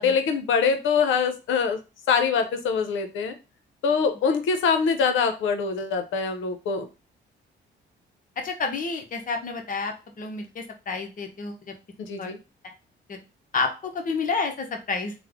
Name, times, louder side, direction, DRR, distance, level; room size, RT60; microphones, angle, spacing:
voice 1, 0.0-1.8 2.1-3.3 3.8-6.9 12.0-12.4, left 5 dB, 75° left, 7 dB, 0.7 m, -24 dB
voice 2, 8.4-11.7 12.2-12.3 13.1-13.2 13.5-15.1, left 4 dB, 45° left, 4 dB, 0.8 m, -30 dB
3.2 x 2.1 x 3.5 m, 0.30 s
cardioid pair, 90°, 20 cm